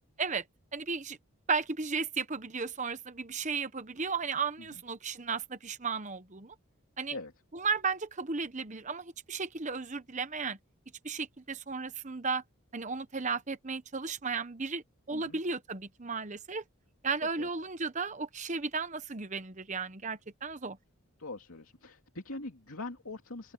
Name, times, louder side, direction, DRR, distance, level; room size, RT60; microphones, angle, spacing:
voice 1, 0.7-1.2 1.5-6.5 7.0-7.1 7.5-10.6 11.0-12.4 12.7-16.6 17.0-20.8, right 4 dB, 35° right, 1.0 m, -34 dB
voice 2, 21.2-23.5, left 2 dB, 80° left, 2.7 m, -43 dB
open air
head